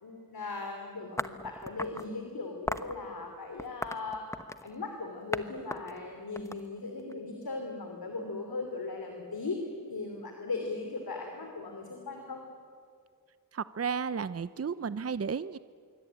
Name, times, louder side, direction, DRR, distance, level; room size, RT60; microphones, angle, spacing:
voice 1, 0.0-4.2 4.6-12.4, left 3 dB, 90° left, 3 dB, 3.1 m, -38 dB
sound 1, 1.2-2.1 2.7-2.9 3.6-4.7 5.3-5.4 5.7-7.1, left 1 dB, 10° left, 1.1 m, -36 dB
voice 2, 13.5-15.6, right 6 dB, 45° right, 15 dB, 0.6 m, -33 dB
26.0 x 23.5 x 9.0 m, 2.2 s
wide cardioid pair, 55°, 35 cm